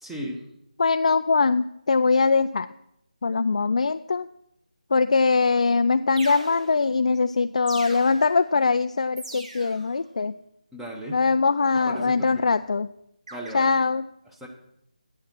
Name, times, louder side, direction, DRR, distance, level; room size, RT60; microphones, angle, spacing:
voice 1, 0.0-0.4 10.7-11.2 11.9-12.5 13.3-13.7 14.4-14.5, right 1 dB, 5° right, -1 dB, 1.0 m, -36 dB
voice 2, 0.8-2.7 3.2-4.3 4.9-10.3 11.1-12.9 13.5-14.0, left 4 dB, 55° left, 9 dB, 0.3 m, -22 dB
sound 1, 5.5-5.6 6.2-7.0 7.7-8.5 9.2-9.9 11.8-12.5 13.3-13.5, right 2 dB, 50° right, 2.4 m, -40 dB
8.7 x 8.5 x 6.1 m, 0.77 s
figure-of-eight pair, 160°, 4 cm